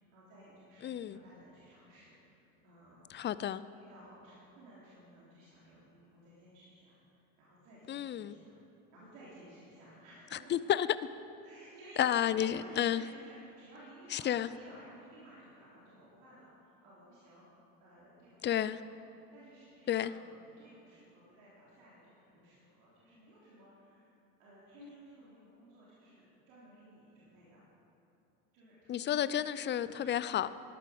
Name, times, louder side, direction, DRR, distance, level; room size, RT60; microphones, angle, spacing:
voice 1, 0.0-3.1 3.7-8.6 8.9-10.5 11.4-18.9 19.3-27.6 28.5-30.2, right 1 dB, 70° right, -8 dB, 3.4 m, -57 dB
voice 2, 0.8-1.2 3.1-3.6 7.9-8.4 10.3-10.9 12.0-13.0 14.1-14.5 18.4-18.8 19.9-20.1 24.8-25.0 28.9-30.5, left 10 dB, 25° left, 16 dB, 0.4 m, -31 dB
13.0 x 11.5 x 5.0 m, 2.8 s
hypercardioid pair, 70°, 43 cm